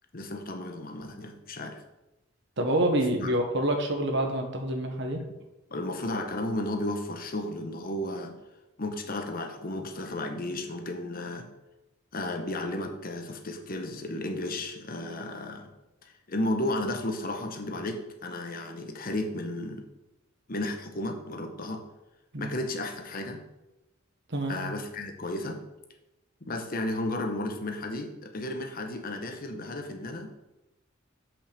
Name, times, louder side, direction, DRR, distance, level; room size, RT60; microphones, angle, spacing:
voice 1, 0.1-1.8 3.2-3.3 5.7-8.4 8.8-11.5 12.1-15.7 16.0-19.9 20.5-21.8 22.4-23.4 24.5-25.6 26.4-30.3, left 1 dB, 45° left, 4 dB, 1.0 m, -33 dB
voice 2, 2.6-5.2 22.3-22.5 24.3-24.6, right 1 dB, 60° right, 3 dB, 1.3 m, -27 dB
5.7 x 5.6 x 6.8 m, 0.98 s
head